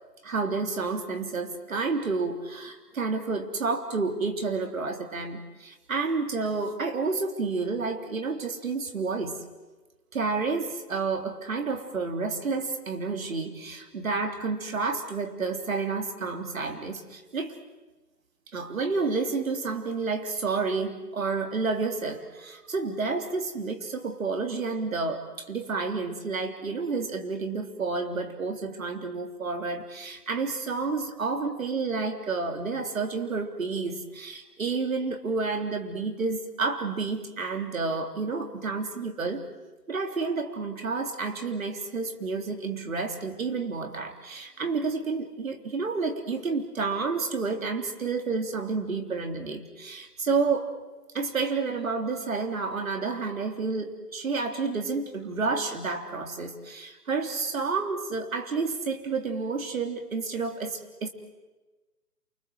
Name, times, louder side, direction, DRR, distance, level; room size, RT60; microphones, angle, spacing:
voice 1, 0.2-9.4 10.1-17.6 18.5-39.4 39.9-50.7 51.1-61.1, right 4 dB, 55° right, 5 dB, 3.5 m, -30 dB
28.5 x 24.5 x 7.9 m, 1.2 s
figure-of-eight pair, 155°, 49 cm